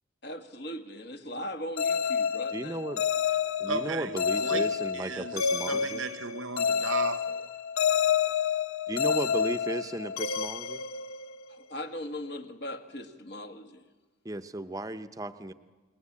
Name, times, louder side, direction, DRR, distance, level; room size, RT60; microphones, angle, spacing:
voice 1, 0.2-2.8 11.5-13.8, left 1 dB, 55° left, 1.5 m, -39 dB
sound 1, 1.8-11.6, left 7 dB, 85° left, 0.9 m, -29 dB
voice 2, 2.5-3.0 3.6-6.0 8.9-10.8 14.2-15.5, right 1 dB, 15° right, 0.8 m, -35 dB
voice 3, 3.7-5.4 5.7-7.5, right 5 dB, 70° right, 0.9 m, -36 dB
29.0 x 20.5 x 8.5 m
head